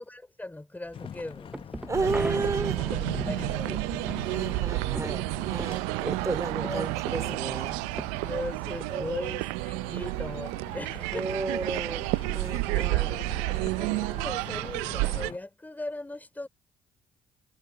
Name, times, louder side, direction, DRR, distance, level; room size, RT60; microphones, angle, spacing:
voice 1, 0.0-3.8 6.6-7.6 8.2-11.4 12.4-13.2 13.6-16.5, left 2 dB, 15° left, 5.1 m, -39 dB
sound 1, 0.9-15.4, left 8 dB, 50° left, 1.1 m, -45 dB
sound 2, 0.9-9.0, right 1 dB, 10° right, 0.7 m, -40 dB
voice 2, 1.9-2.8 4.3-7.8 8.9-9.1 11.1-13.1, right 3 dB, 25° right, 3.5 m, -33 dB
sound 3, 1.9-15.3, right 26 dB, 75° right, 0.6 m, -31 dB
hypercardioid pair, 45°, 12 cm